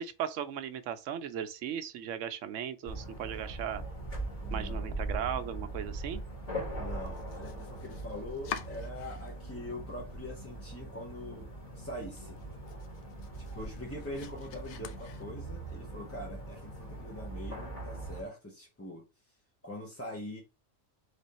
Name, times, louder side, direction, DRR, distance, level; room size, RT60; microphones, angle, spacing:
voice 1, 0.0-3.8 4.5-6.2, right 9 dB, 85° right, 1.0 m, -37 dB
sound 1, 2.8-18.2, right 2 dB, 30° left, 1.8 m, -41 dB
voice 2, 4.4-5.0 6.8-12.4 13.4-19.0 19.6-20.4, left 1 dB, 15° left, 0.6 m, -43 dB
Domestic sounds home sounds, 7.0-9.6 9.9-10.6 11.0-11.1 11.5-11.6 12.0-15.7, left 8 dB, 75° left, 0.9 m, -47 dB
3.7 x 3.3 x 4.1 m
omnidirectional pair, 1.2 m